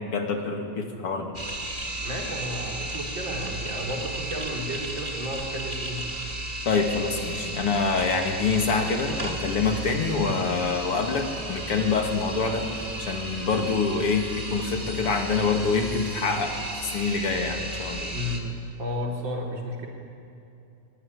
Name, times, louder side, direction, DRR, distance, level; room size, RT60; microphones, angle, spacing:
voice 1, 0.0-1.4 6.7-12.7 13.0-18.1, left 4 dB, 50° left, 3 dB, 3.2 m, -26 dB
sound 1, 1.3-18.4, right 1 dB, 15° right, 2.5 m, -34 dB
voice 2, 2.0-6.1 18.1-18.5 18.8-19.9, equal, 35° right, 0 dB, 4.5 m, -32 dB
24.0 x 23.5 x 9.9 m, 2.7 s
omnidirectional pair, 3.5 m